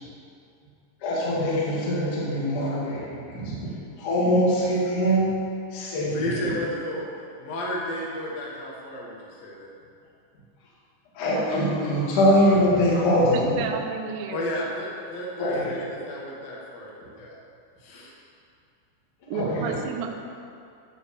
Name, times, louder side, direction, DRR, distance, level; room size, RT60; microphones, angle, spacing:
voice 1, 1.0-3.7 4.0-5.3 5.7-6.5 11.1-13.5 15.4-15.7 19.3-19.8, equal, 50° left, -7 dB, 3.1 m, -23 dB
voice 2, 6.1-7.0 7.4-9.7 14.3-17.3 17.8-18.1, left 1 dB, 75° left, -4 dB, 1.5 m, -32 dB
voice 3, 13.3-14.5 19.3-20.2, right 6 dB, 75° right, 2 dB, 2.8 m, -31 dB
12.5 x 4.9 x 7.0 m, 2.5 s
omnidirectional pair, 5.8 m